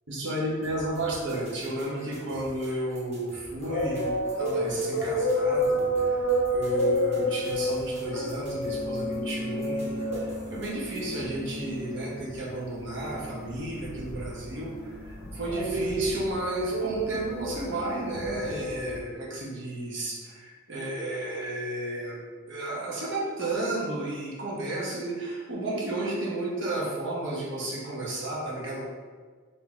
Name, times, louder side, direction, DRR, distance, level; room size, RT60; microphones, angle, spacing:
voice 1, 0.1-6.2 6.5-22.2 22.5-28.9, right 1 dB, 60° right, -5 dB, 1.0 m, -33 dB
sound 1, 0.6-11.3, right 1 dB, 35° right, 0.9 m, -49 dB
sound 2, 3.6-19.0, equal, 70° left, 0.6 m, -30 dB
sound 3, 8.6-19.5, equal, 15° left, 0.4 m, -42 dB
3.8 x 2.7 x 3.5 m, 1.5 s
head